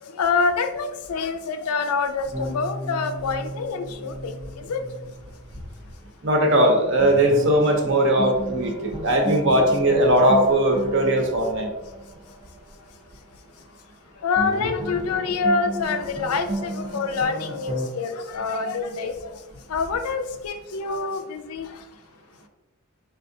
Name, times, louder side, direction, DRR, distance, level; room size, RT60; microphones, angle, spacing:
voice 1, 0.0-4.8 14.2-19.3 19.7-21.8, left 4 dB, 75° left, 8 dB, 0.4 m, -26 dB
sound 1, 2.3-6.1 6.4-6.5 7.0-12.8 14.3-17.9, right 1 dB, 15° right, 0.5 m, -34 dB
voice 2, 6.2-11.7, right 1 dB, 55° right, 3 dB, 0.8 m, -19 dB
4.2 x 3.5 x 2.6 m, 1.0 s
head